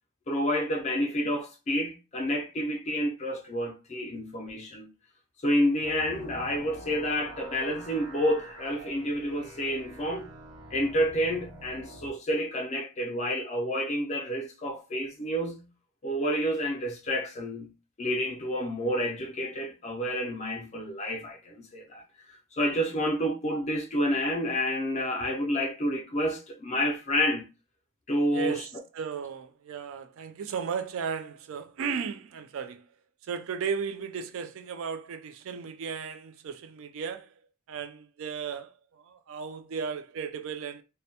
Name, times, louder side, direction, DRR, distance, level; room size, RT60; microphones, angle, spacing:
voice 1, 0.3-4.9 5.4-10.3 10.7-15.6 16.0-17.7 18.0-27.5 28.1-28.7, equal, 30° left, 0.4 m, -29 dB
sound 1, 5.8-12.1, right 1 dB, 85° right, 0.8 m, -46 dB
voice 2, 28.3-28.7 28.9-32.8 33.2-37.3 37.7-40.8, right 6 dB, 70° right, 0.3 m, -35 dB
2.1 x 2.1 x 2.8 m
head